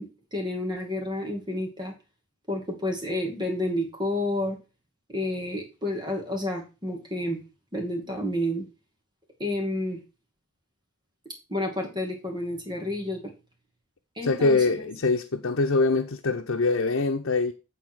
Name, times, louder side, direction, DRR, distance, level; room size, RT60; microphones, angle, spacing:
voice 1, 0.0-1.9 2.5-4.6 5.1-7.4 7.7-8.7 9.4-10.0 11.5-13.2 14.2-14.6, left 1 dB, 20° right, 2.3 m, -30 dB
voice 2, 14.2-17.5, left 3 dB, 75° left, 0.8 m, -24 dB
9.4 x 4.2 x 6.2 m
head